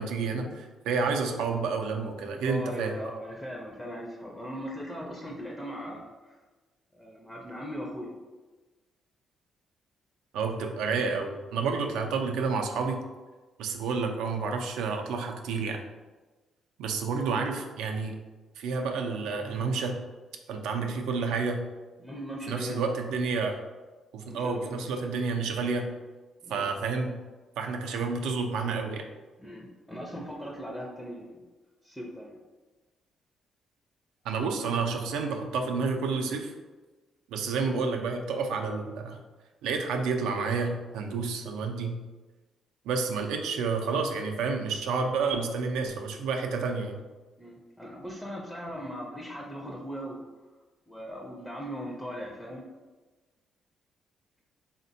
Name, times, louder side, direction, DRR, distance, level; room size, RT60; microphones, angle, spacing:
voice 1, 0.0-3.0 10.3-13.0 13.6-15.8 16.8-18.1 18.6-20.0 20.5-21.6 22.5-23.6 24.1-25.9 26.5-27.1 27.6-29.0 34.2-36.5 37.3-39.2 39.6-42.0 42.9-47.0, right 4 dB, 90° right, 4 dB, 0.3 m, -30 dB
voice 2, 2.4-6.4 6.9-8.1 11.8-11.9 22.0-22.9 24.3-24.9 26.4-26.7 29.4-31.4 31.8-32.4 47.4-50.2 50.9-52.6, equal, 5° left, -1 dB, 0.4 m, -39 dB
3.3 x 2.1 x 2.6 m, 1.2 s
cardioid pair, 90°, 0 cm